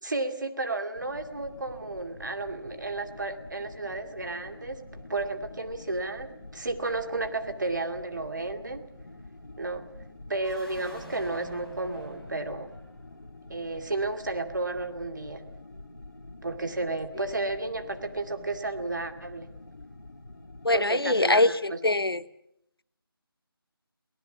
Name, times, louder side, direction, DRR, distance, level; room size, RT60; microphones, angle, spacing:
voice 1, 0.0-8.8 9.6-9.8 10.3-12.7 13.5-15.4 16.4-19.5 20.7-21.8, right 2 dB, 50° right, 2.3 m, -32 dB
sound 1, 1.0-20.8, left 2 dB, 45° left, 2.7 m, -47 dB
sound 2, 10.3-13.3, equal, ahead, 0.9 m, -48 dB
voice 2, 20.6-22.2, left 2 dB, 70° left, 1.0 m, -23 dB
24.5 x 18.0 x 7.1 m
figure-of-eight pair, 160°, 13 cm